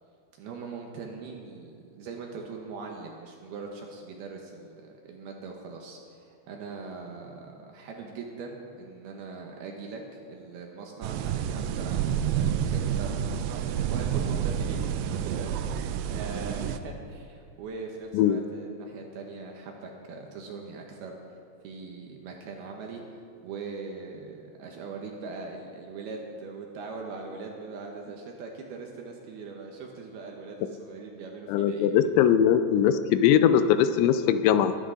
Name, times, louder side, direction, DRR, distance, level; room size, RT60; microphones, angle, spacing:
voice 1, 0.4-15.6 16.1-21.1 21.6-31.9, right 4 dB, 70° right, 1 dB, 2.5 m, -41 dB
sound 1, 11.0-16.8, right 9 dB, 85° right, 3.0 m, -29 dB
voice 2, 31.5-34.8, left 9 dB, 85° left, 11 dB, 2.8 m, -21 dB
22.0 x 10.5 x 3.8 m, 2.5 s
omnidirectional pair, 5.3 m